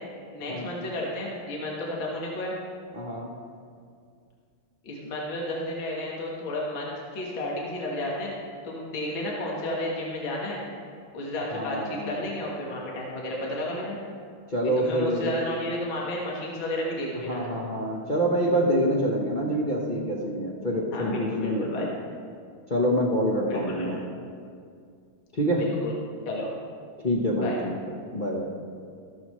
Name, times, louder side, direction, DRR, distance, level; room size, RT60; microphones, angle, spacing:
voice 1, 0.3-2.5 4.8-8.4 8.6-10.6 11.1-14.0 14.8-17.6 20.9-21.9 23.5-24.0 25.6-25.9 26.3-26.5 27.3-27.6, left 1 dB, 65° left, -3 dB, 2.2 m, -32 dB
voice 2, 2.9-3.3 11.5-12.2 14.5-15.4 17.3-21.9 22.7-24.0 25.3-25.7 27.0-27.8 28.1-28.5, equal, 40° left, -4 dB, 0.6 m, -26 dB
13.5 x 13.0 x 3.1 m, 2.2 s
omnidirectional pair, 2.4 m